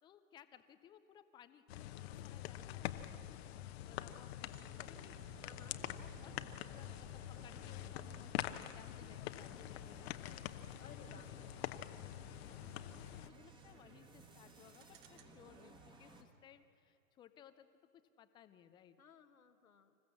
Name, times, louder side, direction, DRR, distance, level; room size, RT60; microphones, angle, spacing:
voice 1, 0.0-5.2 6.0-6.4 6.6-10.7 12.2-17.7 18.2-19.0, left 10 dB, 10° left, 11 dB, 0.4 m, -62 dB
sound 1, 1.7-13.3, left 13 dB, 50° left, 0.9 m, -45 dB
sound 2, 4.4-15.7, right 8 dB, 35° right, 1.2 m, -63 dB
voice 2, 5.4-5.8 10.8-11.5 19.0-20.0, left 6 dB, 85° left, 9 dB, 1.5 m, -60 dB
sound 3, 6.0-16.2, right 2 dB, 10° right, 1.5 m, -62 dB
27.0 x 14.5 x 7.3 m, 2.7 s
hypercardioid pair, 120°, 41 cm